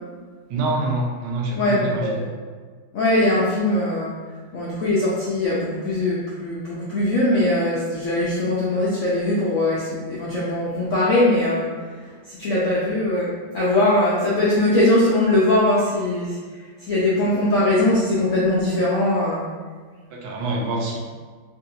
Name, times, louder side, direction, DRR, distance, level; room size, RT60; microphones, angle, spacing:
voice 1, 0.5-2.3 20.1-21.0, right 2 dB, 70° right, -2 dB, 1.3 m, -26 dB
voice 2, 1.6-2.3 2.9-4.1 4.5-11.7 12.4-16.4 16.8-19.5, left 1 dB, 80° left, -8 dB, 0.7 m, -21 dB
3.9 x 2.6 x 2.7 m, 1.5 s
omnidirectional pair, 2.1 m